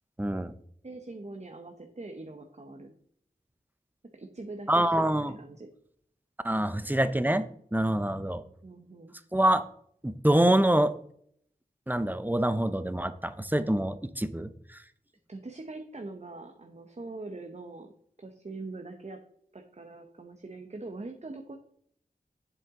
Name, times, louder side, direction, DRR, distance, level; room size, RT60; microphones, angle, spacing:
voice 1, 0.2-0.5 4.7-5.4 6.4-8.4 9.3-9.6 10.0-10.9 11.9-14.8, right 1 dB, 10° right, 12 dB, 0.7 m, -26 dB
voice 2, 0.8-2.9 4.1-5.7 8.4-9.1 15.3-17.9 18.2-19.2 19.5-21.6, right 2 dB, 45° right, 5 dB, 1.0 m, -43 dB
7.8 x 7.8 x 3.8 m, 0.65 s
wide cardioid pair, 55°, 16 cm